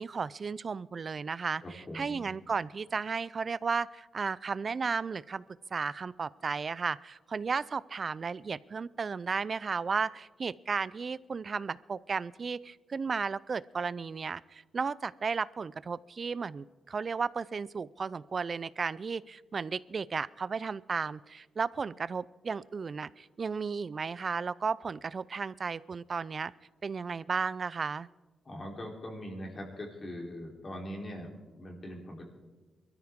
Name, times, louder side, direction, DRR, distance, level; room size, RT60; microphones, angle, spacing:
voice 1, 0.0-5.4 5.7-26.5 26.8-28.1, right 5 dB, 45° right, 20 dB, 0.4 m, -34 dB
voice 2, 1.6-2.3 28.5-32.3, equal, 40° left, 0 dB, 3.5 m, -42 dB
22.0 x 13.5 x 3.6 m, 1.2 s
cardioid pair, 85°, 0 cm